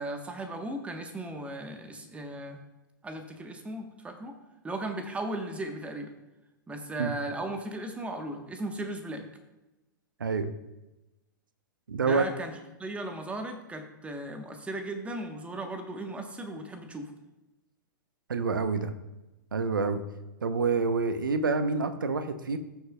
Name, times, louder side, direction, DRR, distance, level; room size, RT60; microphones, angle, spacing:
voice 1, 0.0-2.6 3.0-4.4 4.6-6.1 6.7-9.3 12.0-12.5 12.8-17.1, right 1 dB, 10° right, 5 dB, 1.3 m, -36 dB
voice 2, 11.9-12.2 18.3-18.9 19.5-20.0 20.4-22.6, right 4 dB, 80° right, 11 dB, 0.9 m, -27 dB
18.5 x 6.9 x 2.4 m, 1.0 s
figure-of-eight pair, 105°, 11 cm